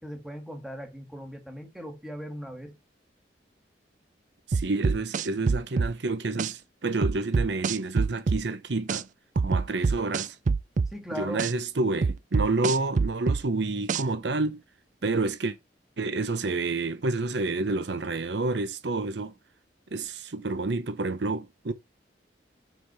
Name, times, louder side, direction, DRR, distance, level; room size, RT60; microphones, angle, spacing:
voice 1, 0.0-2.8 10.9-11.5, equal, 5° right, 1.9 m, -39 dB
sound 1, 4.5-5.9 6.4-6.5 7.0-8.4 8.9-9.0 9.4-10.9 11.4-11.5 12.0-13.4 13.9-14.0, right 4 dB, 45° right, 0.4 m, -25 dB
voice 2, 4.5-9.1 9.4-10.4 11.1-14.6 15.0-15.6 16.0-19.3 19.9-21.7, right 3 dB, 75° right, 0.8 m, -29 dB
6.0 x 5.7 x 6.8 m
head